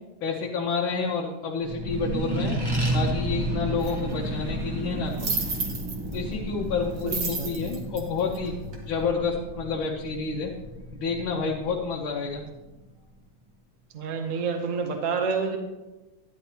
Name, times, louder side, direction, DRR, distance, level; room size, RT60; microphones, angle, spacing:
voice 1, 0.2-2.6 2.9-5.3 6.1-10.5 10.9-12.4, left 4 dB, 80° left, -1 dB, 1.6 m, -29 dB
Accelerating revving vroom, 1.6-12.6, right 1 dB, 15° right, 0.8 m, -32 dB
sound 1, 3.8-3.9 5.1-6.2 7.0-8.9, right 4 dB, 65° right, 2.0 m, -31 dB
voice 2, 7.0-7.5 13.9-15.6, right 5 dB, 50° right, 4 dB, 1.0 m, -28 dB
11.5 x 9.8 x 2.9 m, 1.1 s
omnidirectional pair, 2.2 m